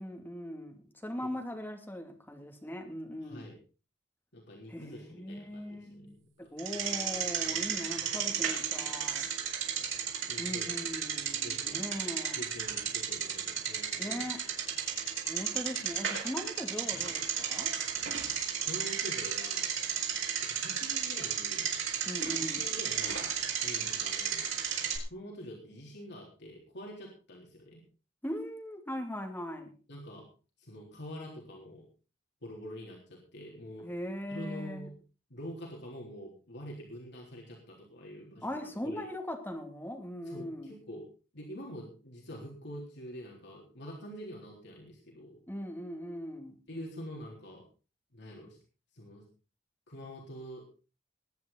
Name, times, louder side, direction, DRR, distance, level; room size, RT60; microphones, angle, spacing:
voice 1, 0.0-3.5 4.7-6.1 6.5-9.3 10.4-12.4 14.0-14.4 15.3-17.7 22.1-22.6 28.2-29.7 33.8-34.9 38.4-40.7 45.5-46.5, equal, 10° left, 3 dB, 2.8 m, -40 dB
voice 2, 3.2-3.6 4.3-6.5 7.5-7.7 8.0-8.1 10.3-11.1 11.4-11.9 12.4-14.3 18.7-19.7 20.5-21.7 22.4-23.4 23.6-24.5 24.8-27.8 29.9-30.3 30.6-31.9 32.4-33.9 34.3-34.9 35.3-39.1 40.3-41.0 41.3-45.4 46.7-47.6 48.1-48.6 48.9-49.2 49.9-50.6, equal, 65° left, -1 dB, 3.7 m, -46 dB
Bicycle, 6.6-25.0, right 8 dB, 85° right, 4.5 m, -34 dB
21.5 x 9.6 x 4.1 m, 0.35 s
head